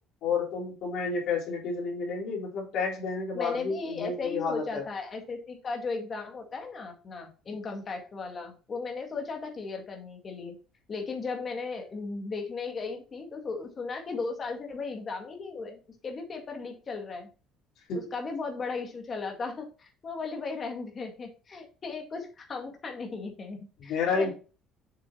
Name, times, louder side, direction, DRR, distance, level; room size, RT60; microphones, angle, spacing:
voice 1, 0.2-4.8 17.9-18.0 23.8-24.3, left 5 dB, 60° left, -2 dB, 3.9 m, -30 dB
voice 2, 3.3-10.6 10.9-17.3 18.1-24.3, left 4 dB, 30° left, 3 dB, 2.0 m, -36 dB
7.4 x 6.6 x 2.8 m, 0.35 s
cardioid pair, 140°, 0 cm